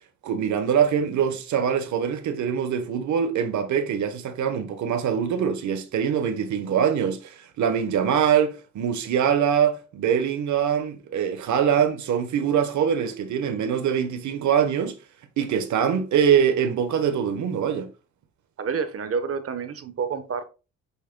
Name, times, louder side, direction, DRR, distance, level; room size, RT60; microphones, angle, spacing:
voice 1, 0.2-15.0 15.4-17.9, right 8 dB, 70° right, 1.2 m, -23 dB
voice 2, 18.6-20.4, right 6 dB, 50° right, 1.1 m, -28 dB
8.3 x 6.5 x 2.2 m
cardioid pair, 90°, 30 cm